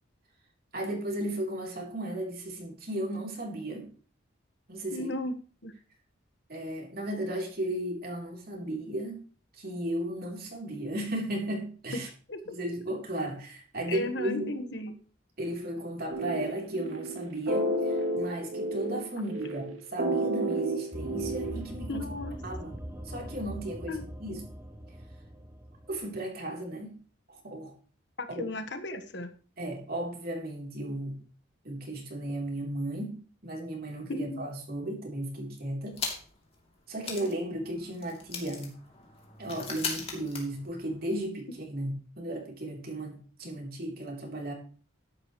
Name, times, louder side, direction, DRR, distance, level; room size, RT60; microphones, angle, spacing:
voice 1, 0.7-3.9 4.7-5.1 6.5-9.2 9.6-12.1 12.5-14.6 15.4-22.1 22.4-22.8 23.1-24.4 25.9-27.0 27.3-27.7 28.3-28.4 29.6-31.2 31.6-36.0 36.9-38.7 39.4-44.5, right 1 dB, 50° right, 0 dB, 3.5 m, -35 dB
voice 2, 4.9-5.3 5.6-5.7 11.9-12.0 12.3-12.6 13.9-14.9 21.9-22.4 23.9-24.0 28.2-29.3 34.1-34.4, left 2 dB, 55° left, 8 dB, 1.4 m, -35 dB
sound 1, 16.1-21.6, right 1 dB, 75° right, 2.8 m, -31 dB
sound 2, 20.9-26.1, equal, 10° right, 0.9 m, -41 dB
sound 3, 35.9-36.5 36.7-36.8 37.0-41.1, left 5 dB, 30° left, 2.9 m, -39 dB
12.5 x 11.0 x 3.2 m, 0.40 s
head